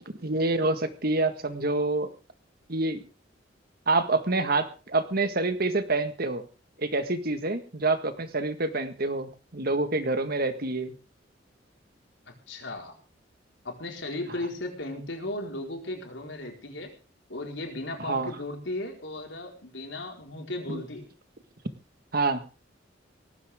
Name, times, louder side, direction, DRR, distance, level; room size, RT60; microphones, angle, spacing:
voice 1, 0.2-2.1 2.7-3.0 3.9-6.4 6.8-10.9 18.0-18.3 20.7-20.8 22.1-22.4, right 2 dB, 55° right, 9 dB, 1.7 m, -27 dB
voice 2, 12.5-12.9 13.6-16.9 17.3-21.1, left 2 dB, 80° left, 2 dB, 4.7 m, -36 dB
18.5 x 15.5 x 3.7 m, 0.34 s
head